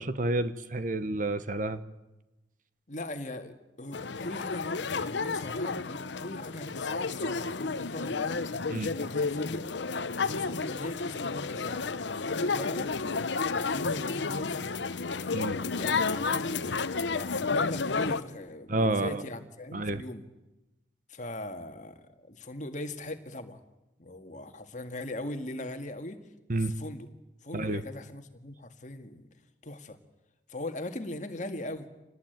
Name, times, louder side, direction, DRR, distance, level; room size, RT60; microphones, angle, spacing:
voice 1, 0.0-1.8 8.7-8.9 15.3-15.6 18.7-19.2 19.7-20.0 26.5-26.7 27.5-27.8, right 2 dB, 45° right, 12 dB, 1.2 m, -29 dB
voice 2, 2.9-8.4 8.9-9.6 10.2-12.9 13.5-15.0 15.7-16.7 17.1-20.3 21.1-23.6 24.0-26.2 26.5-27.1 27.4-29.3 29.6-30.0 30.5-31.9, left 1 dB, 40° left, 7 dB, 2.0 m, -39 dB
sound 1, 3.9-18.2, left 4 dB, 75° left, 0.9 m, -31 dB
26.5 x 19.0 x 9.3 m, 1.0 s
head